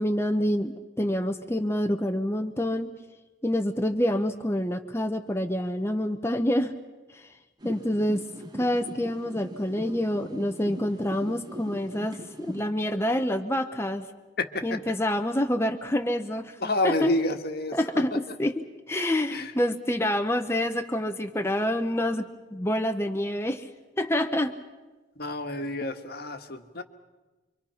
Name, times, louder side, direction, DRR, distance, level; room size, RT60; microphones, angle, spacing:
voice 1, 0.0-2.9 3.4-6.7 7.1-7.3 7.6-8.2 8.5-14.1 14.6-16.6 16.8-17.1 17.7-23.7 24.0-24.5, left 1 dB, 15° left, 6 dB, 0.9 m, -27 dB
sound 1, 7.6-12.6, equal, 20° right, 1.5 m, -41 dB
voice 2, 14.4-14.8 16.6-17.8 19.3-19.5 25.2-26.8, left 2 dB, 55° left, 7 dB, 1.6 m, -28 dB
26.5 x 24.5 x 5.8 m, 1.2 s
head